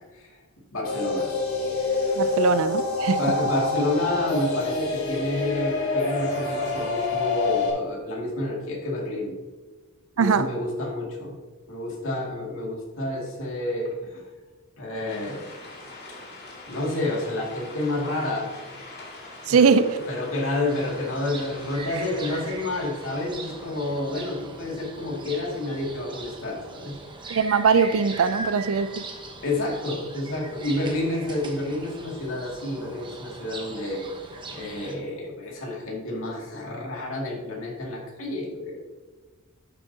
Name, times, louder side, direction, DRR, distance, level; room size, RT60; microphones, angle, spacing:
voice 1, 0.7-1.3 3.0-9.3 10.2-11.3 11.7-14.2 14.8-15.5 16.7-18.5 19.5-27.0 29.4-34.0 34.5-38.8, left 1 dB, 65° left, -2 dB, 2.4 m, -29 dB
sound 1, 0.8-7.7, left 3 dB, 90° left, 2.6 m, -26 dB
voice 2, 2.2-3.2 10.2-10.5 19.5-19.9 27.3-29.0, right 5 dB, 70° right, 13 dB, 0.4 m, -21 dB
sound 2, 15.1-24.0, left 2 dB, 50° left, 2.3 m, -44 dB
sound 3, 20.7-35.0, right 2 dB, 20° right, 1.0 m, -40 dB
11.0 x 7.1 x 2.8 m, 1.3 s
head